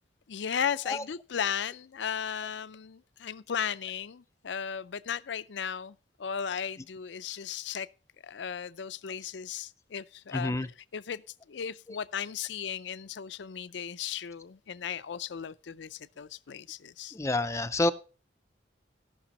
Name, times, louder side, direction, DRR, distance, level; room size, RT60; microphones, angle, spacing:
voice 1, 0.3-7.9 8.2-10.5 10.9-11.2 11.5-17.2, left 8 dB, 70° left, 0.5 m, -36 dB
voice 2, 10.3-10.7 17.1-17.9, left 2 dB, 15° left, 0.4 m, -28 dB
16.0 x 6.0 x 4.1 m
head